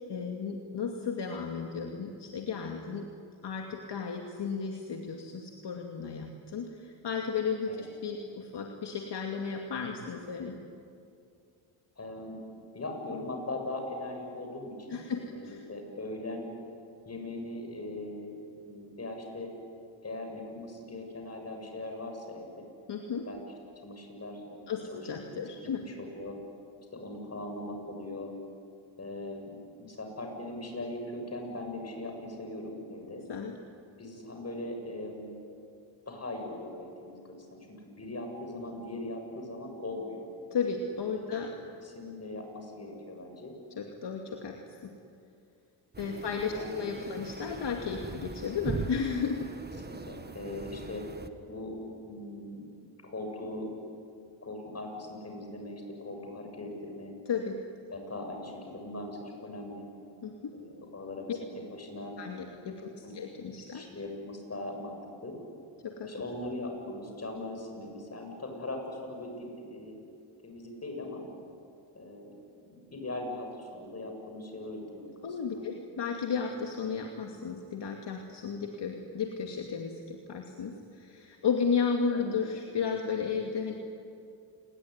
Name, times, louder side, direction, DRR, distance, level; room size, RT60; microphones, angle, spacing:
voice 1, 0.1-3.1 3.4-10.6 14.9-15.6 22.9-23.3 24.7-25.9 33.3-33.6 40.5-41.5 43.8-44.9 46.0-49.5 57.3-57.6 60.2-60.5 61.3-61.4 62.2-63.9 65.8-66.1 75.2-83.7, left 5 dB, 55° left, 2 dB, 2.6 m, -34 dB
voice 2, 12.0-12.4 12.7-16.5 17.0-19.5 20.0-22.7 23.3-23.4 23.8-25.5 25.8-26.4 26.9-28.3 29.0-29.5 29.8-33.2 34.0-35.4 36.1-37.2 37.5-40.3 41.1-41.3 41.8-43.5 46.0-46.2 46.5-46.9 49.8-51.0 51.5-51.8 52.0-52.6 53.0-53.8 54.4-57.1 57.9-59.9 60.5-61.4 61.7-62.1 62.8-63.1 63.7-65.4 66.1-69.9 70.4-71.2 71.9-72.3 72.9-75.1 75.4-75.6 82.1-82.3, left 2 dB, 30° left, 3 dB, 7.7 m, -40 dB
sound 1, 45.9-51.3, right 4 dB, 20° right, 1.7 m, -41 dB
28.5 x 21.0 x 9.8 m, 2.5 s
cardioid pair, 90°, 50 cm